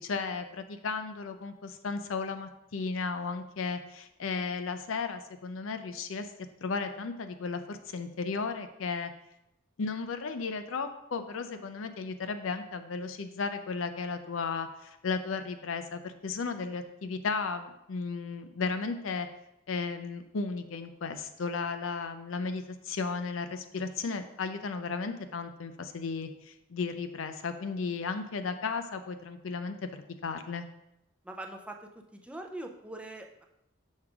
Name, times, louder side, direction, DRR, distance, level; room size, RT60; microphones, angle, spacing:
voice 1, 0.0-6.3 6.6-9.1 9.8-19.3 19.7-30.7, left 4 dB, 80° left, 8 dB, 0.5 m, -35 dB
voice 2, 31.2-33.4, right 1 dB, 5° right, 3 dB, 0.4 m, -42 dB
6.4 x 4.8 x 3.5 m, 0.84 s
head